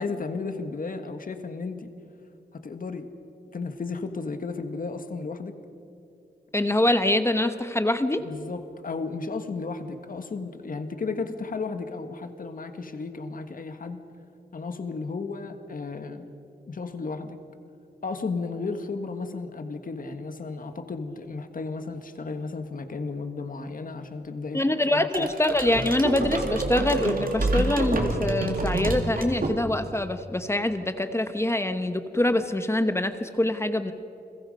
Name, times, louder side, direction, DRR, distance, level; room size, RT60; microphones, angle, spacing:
voice 1, 0.0-1.9 2.5-3.1 3.5-5.5 8.2-14.0 14.5-16.3 16.7-17.4 18.0-24.6 24.9-25.3, left 4 dB, 55° left, 8 dB, 1.5 m, -34 dB
voice 2, 6.5-8.2 24.5-33.9, left 1 dB, 15° left, 9 dB, 0.9 m, -24 dB
sound 1, 25.1-30.0, right 2 dB, 55° right, 2.3 m, -28 dB
30.0 x 21.5 x 5.3 m, 2.7 s
wide cardioid pair, 145°, 17 cm